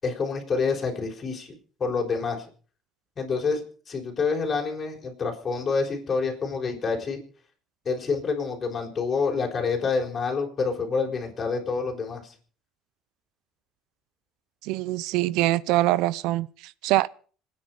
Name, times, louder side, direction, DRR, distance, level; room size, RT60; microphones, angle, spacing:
voice 1, 0.0-2.5 3.2-7.2 7.8-12.3, left 4 dB, 30° left, 5.9 m, -27 dB
voice 2, 14.6-17.1, right 17 dB, 75° right, 0.7 m, -24 dB
26.5 x 10.0 x 4.9 m
cardioid pair, 120°, 0 cm